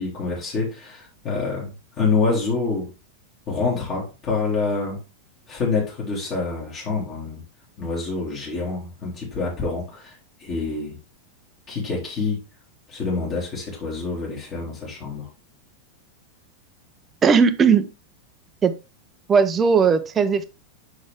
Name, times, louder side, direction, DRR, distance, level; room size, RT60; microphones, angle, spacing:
voice 1, 0.0-2.9 3.5-5.0 5.5-7.4 7.8-10.1 10.4-10.9 11.7-12.4 12.9-15.3, left 4 dB, 35° left, 3.3 m, -26 dB
voice 2, 17.2-17.9 18.6-18.7 19.3-20.4, right 6 dB, 20° right, 0.8 m, -17 dB
6.4 x 6.0 x 3.6 m
figure-of-eight pair, 90°, 0 cm